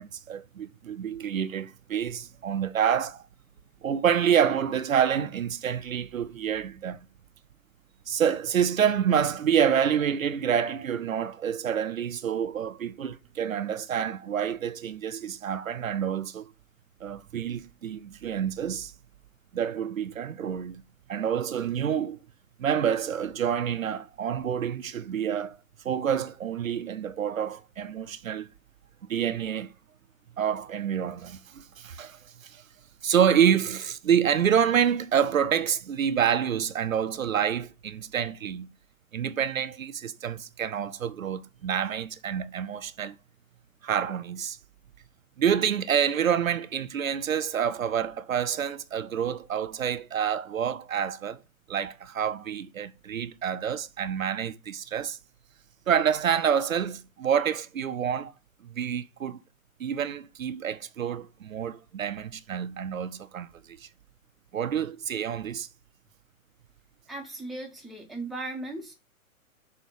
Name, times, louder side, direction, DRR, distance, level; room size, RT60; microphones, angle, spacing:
voice 1, 0.0-3.2 3.8-7.0 8.1-16.5 17.0-18.9 19.5-20.8 21.1-22.2 22.6-25.6 25.8-28.5 29.1-29.7 30.4-32.6 33.0-38.7 39.1-43.2 43.8-44.6 45.4-51.4 51.7-55.2 55.9-58.3 58.6-59.4 59.8-63.5 63.8-63.9 64.5-65.7, right 8 dB, 70° right, 0.6 m, -27 dB
voice 2, 67.1-68.9, right 2 dB, ahead, 0.8 m, -37 dB
6.4 x 2.9 x 5.3 m
figure-of-eight pair, 115°, 42 cm